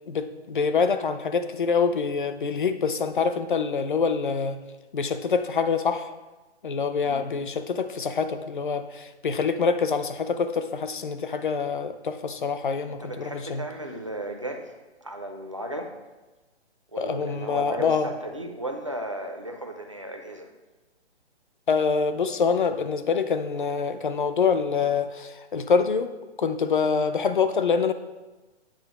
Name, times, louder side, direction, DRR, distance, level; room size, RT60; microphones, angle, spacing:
voice 1, 0.1-4.6 4.9-6.0 6.6-13.6 17.0-18.1 21.7-26.1 26.4-27.9, left 5 dB, 50° left, 10 dB, 0.5 m, -25 dB
voice 2, 12.8-14.7 15.0-15.9 16.9-20.5, right 1 dB, 30° right, 3 dB, 0.4 m, -35 dB
8.8 x 3.0 x 5.9 m, 1.1 s
hypercardioid pair, 180°, 34 cm